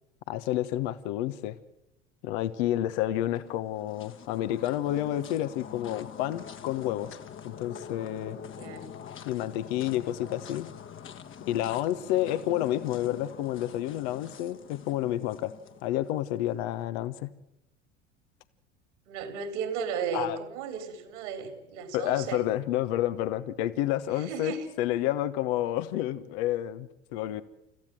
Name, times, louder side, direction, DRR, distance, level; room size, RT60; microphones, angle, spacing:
voice 1, 0.3-1.6 2.2-7.1 7.4-8.4 9.2-10.7 11.5-15.5 15.8-17.3 20.1-20.4 21.9-27.4, left 13 dB, 65° left, 12 dB, 1.2 m, -30 dB
sound 1, 3.3-16.6, left 8 dB, 35° left, 1.5 m, -45 dB
voice 2, 8.6-8.9 19.1-22.4 24.2-24.7, right 6 dB, 70° right, 8 dB, 3.8 m, -35 dB
29.5 x 15.0 x 7.7 m, 0.85 s
hypercardioid pair, 75°, 35 cm